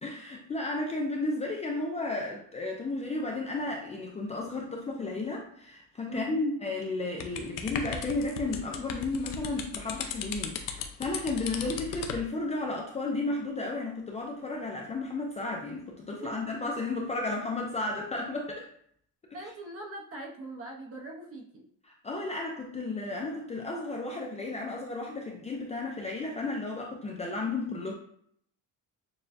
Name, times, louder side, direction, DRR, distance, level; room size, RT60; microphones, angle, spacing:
voice 1, 0.0-18.7 22.0-27.9, left 2 dB, 20° left, -1 dB, 0.4 m, -33 dB
voice 2, 6.0-6.4 16.2-16.3 19.3-21.7, right 2 dB, 40° right, 1 dB, 0.8 m, -42 dB
sound 1, 7.2-12.2, left 7 dB, 70° left, 0.6 m, -36 dB
6.6 x 2.2 x 2.5 m, 0.67 s
cardioid pair, 160°, 34 cm